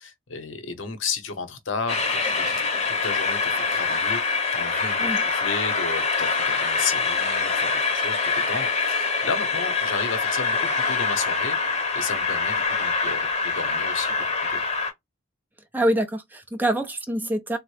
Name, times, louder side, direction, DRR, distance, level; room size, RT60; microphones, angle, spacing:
voice 1, 0.0-2.5 2.9-14.6, left 4 dB, 65° left, 0.8 m, -33 dB
Train, 1.9-14.9, left 4 dB, 35° left, 0.8 m, -25 dB
voice 2, 15.7-17.6, right 1 dB, 10° right, 0.4 m, -25 dB
3.7 x 2.0 x 3.0 m
head